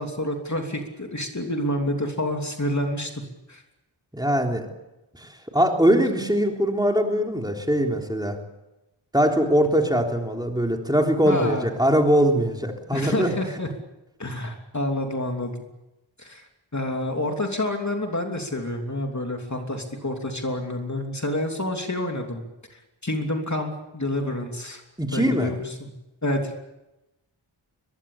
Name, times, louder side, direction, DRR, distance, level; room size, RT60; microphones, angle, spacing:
voice 1, 0.0-3.2 3.5-3.6 11.3-11.7 12.9-13.7 14.2-15.6 16.2-16.4 16.7-22.4 22.7-24.8 25.1-25.9 26.2-26.6, left 1 dB, 35° left, 3 dB, 3.0 m, -28 dB
voice 2, 4.1-4.7 5.1-8.4 9.1-13.3 25.0-25.5, equal, 10° right, 2 dB, 3.5 m, -22 dB
22.5 x 22.0 x 8.6 m, 0.99 s
wide cardioid pair, 70°, 48 cm